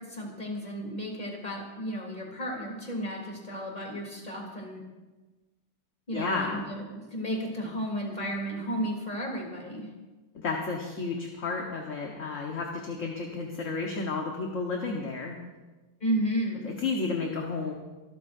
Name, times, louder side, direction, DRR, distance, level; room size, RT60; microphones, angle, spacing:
voice 1, 0.0-4.8 6.1-9.9 16.0-16.7, equal, 25° left, -1 dB, 3.4 m, -33 dB
voice 2, 6.1-6.6 10.3-15.4 16.6-17.7, left 4 dB, 45° left, 0 dB, 1.5 m, -32 dB
25.0 x 13.5 x 2.7 m, 1.2 s
omnidirectional pair, 1.9 m